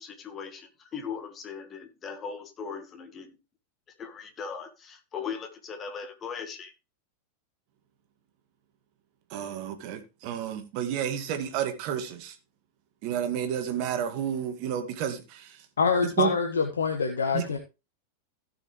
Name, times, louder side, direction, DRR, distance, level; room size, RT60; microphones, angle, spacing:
voice 1, 0.0-3.4 4.0-6.7, left 6 dB, 25° left, 2.0 m, -39 dB
voice 2, 9.3-12.4 13.0-15.7 16.2-16.3 17.3-17.4, right 9 dB, 45° right, 2.1 m, -31 dB
voice 3, 15.8-17.6, left 5 dB, 70° left, 1.4 m, -25 dB
16.5 x 6.5 x 3.1 m
figure-of-eight pair, 90°, 0 cm